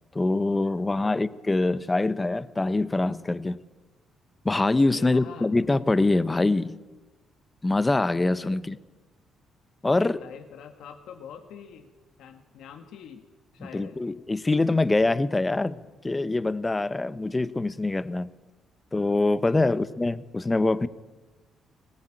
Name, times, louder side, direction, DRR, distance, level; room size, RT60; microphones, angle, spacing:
voice 1, 0.1-3.6 4.4-6.7 7.6-8.8 9.8-10.2 13.6-18.3 18.9-20.9, left 2 dB, 20° left, 15 dB, 0.9 m, -24 dB
voice 2, 4.9-5.5 8.4-8.6 9.9-11.9 12.2-13.3 13.5-14.0 19.4-19.8, left 7 dB, 80° left, 6 dB, 1.8 m, -45 dB
21.0 x 19.0 x 9.0 m, 1.2 s
cardioid pair, 90°, 0 cm